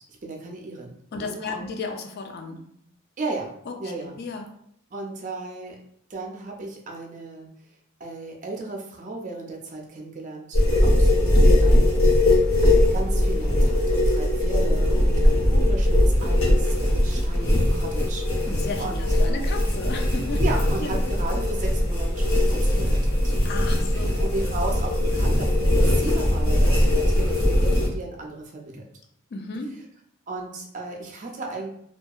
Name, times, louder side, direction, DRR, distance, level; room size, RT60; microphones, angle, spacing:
voice 1, 0.2-1.7 3.2-3.5 3.8-4.1 4.9-5.8 6.1-7.5 8.0-19.6 20.4-23.3 23.9-28.8 30.3-31.7, right 2 dB, 35° right, 0 dB, 0.4 m, -35 dB
voice 2, 1.1-2.6 3.7-4.6 11.3-11.6 18.5-20.4 20.8-21.1 23.4-24.5 29.3-29.7, left 3 dB, 50° left, 4 dB, 0.3 m, -34 dB
sound 1, 10.5-27.9, left 1 dB, 85° left, 1.0 m, -20 dB
2.7 x 2.2 x 2.3 m, 0.69 s
head